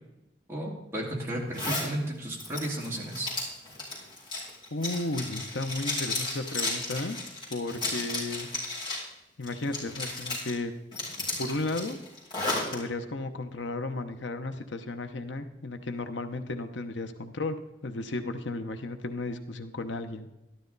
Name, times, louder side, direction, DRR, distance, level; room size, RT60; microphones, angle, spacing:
voice 1, 0.5-3.3, right 1 dB, 15° right, -4 dB, 2.8 m, -33 dB
Zipper (clothing), 1.5-1.9 2.3-9.1 9.4-10.5 10.9-12.7, left 2 dB, 25° left, 5.4 m, -33 dB
voice 2, 4.7-7.2 7.5-8.5 9.4-10.7 11.4-12.0 12.7-20.3, left 2 dB, 80° left, 8 dB, 0.9 m, -34 dB
13.0 x 12.0 x 4.0 m, 0.93 s
head